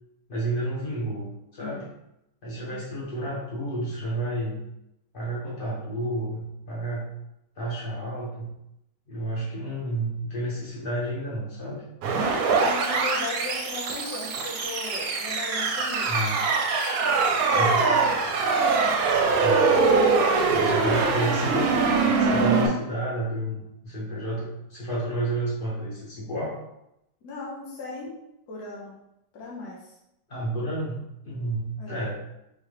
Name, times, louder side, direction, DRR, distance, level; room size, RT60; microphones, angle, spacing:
voice 1, 0.3-1.9 2.4-4.6 5.1-7.1 7.6-8.5 9.1-11.8 16.1-16.4 17.5-17.9 19.4-19.7 20.5-26.6 30.3-32.2, right 1 dB, 35° left, -6 dB, 1.3 m, -31 dB
sound 1, 12.0-22.7, right 4 dB, 75° right, 1.0 m, -23 dB
voice 2, 12.5-16.1 18.6-19.0 27.2-28.1 28.5-29.0 29.3-29.9 31.8-32.1, left 3 dB, 75° left, -4 dB, 1.4 m, -37 dB
3.5 x 3.0 x 3.2 m, 0.84 s
omnidirectional pair, 1.7 m